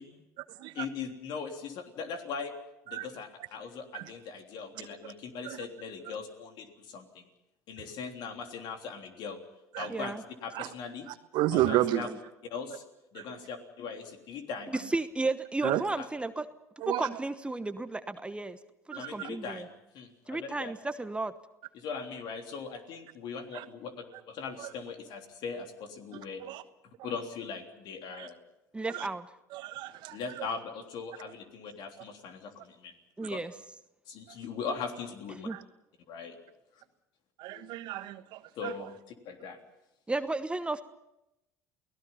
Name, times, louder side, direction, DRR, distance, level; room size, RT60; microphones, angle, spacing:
voice 1, 0.7-2.5 2.9-7.3 7.7-9.4 9.8-10.1 10.4-11.1 11.5-12.1 12.4-12.8 13.1-14.9 16.0-16.1 18.9-19.7 19.9-20.7 21.7-23.9 24.3-26.4 27.0-28.4 30.1-32.9 33.2-33.4 34.1-35.5 36.1-36.4 37.5-37.7 38.6-39.6, left 5 dB, 55° left, 5 dB, 3.4 m, -40 dB
voice 2, 9.9-10.2 11.8-12.2 14.7-16.5 16.9-18.6 18.9-19.7 20.3-21.3 28.7-29.3 33.2-33.5 35.4-35.6 40.1-40.8, right 2 dB, 10° right, 11 dB, 1.1 m, -33 dB
voice 3, 11.3-12.1 15.6-15.8 16.8-17.0 19.0-19.1 23.5-23.6 26.4-26.6 28.2-28.3 28.9-29.1 29.5-30.5 35.5-35.6 37.4-38.7, right 15 dB, 60° right, 12 dB, 1.3 m, -31 dB
29.5 x 18.0 x 5.7 m, 0.90 s
hypercardioid pair, 70°, 9 cm